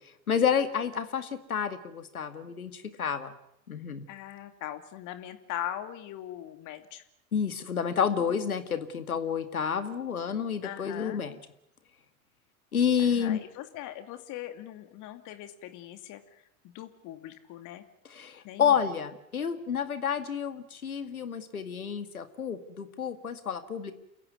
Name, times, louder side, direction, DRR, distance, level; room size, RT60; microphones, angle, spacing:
voice 1, 0.3-3.3 3.7-4.0 7.3-11.4 12.7-13.4 18.1-23.9, left 7 dB, 80° left, 10 dB, 2.2 m, -29 dB
voice 2, 4.1-7.0 10.6-11.2 13.0-17.8 18.4-18.8, left 12 dB, 45° left, 9 dB, 2.6 m, -41 dB
28.5 x 15.5 x 9.5 m, 0.79 s
figure-of-eight pair, 80°, 42 cm